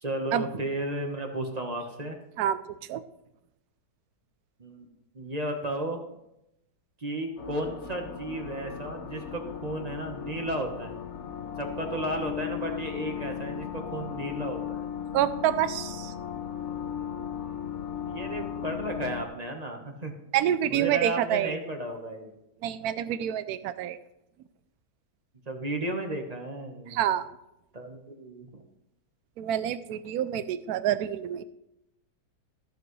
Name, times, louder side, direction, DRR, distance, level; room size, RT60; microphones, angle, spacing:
voice 1, 0.0-2.2 4.6-4.9 5.1-6.0 7.0-11.0 11.6-14.9 18.0-20.1 20.7-22.4 25.5-27.0 27.7-28.5, right 1 dB, 25° right, 3 dB, 1.1 m, -34 dB
sound 1, 7.4-19.3, left 9 dB, 55° left, 0.8 m, -36 dB
voice 2, 15.1-16.1 20.3-21.6 22.6-24.0 26.9-27.3 29.4-31.4, right 11 dB, 70° right, 14 dB, 1.0 m, -27 dB
14.5 x 7.7 x 3.2 m, 0.85 s
omnidirectional pair, 1.8 m